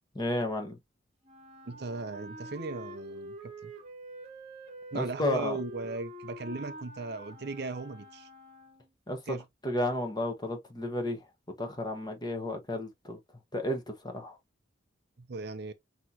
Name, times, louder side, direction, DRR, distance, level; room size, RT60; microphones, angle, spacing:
voice 1, 0.1-0.8 4.9-5.6 9.1-9.4 9.6-11.3 11.6-13.2 13.5-14.4, left 1 dB, 20° left, 1.1 m, -32 dB
Wind instrument woodwind instrument, 1.2-8.9, right 1 dB, 35° right, 1.1 m, -46 dB
voice 2, 1.7-3.7 4.9-8.3 9.3-9.4 15.3-15.7, right 3 dB, 55° right, 0.6 m, -37 dB
6.1 x 3.0 x 2.7 m
head